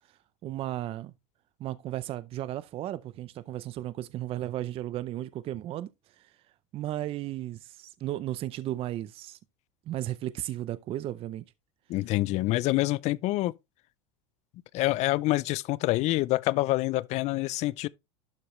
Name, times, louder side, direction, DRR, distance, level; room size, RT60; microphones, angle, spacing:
voice 1, 0.4-1.1 1.6-6.3 6.7-9.4 9.9-11.4, right 13 dB, 40° right, 0.6 m, -35 dB
voice 2, 11.9-13.5 14.7-17.9, left 18 dB, 45° left, 0.5 m, -26 dB
12.0 x 4.9 x 3.1 m
supercardioid pair, 115°, 16 cm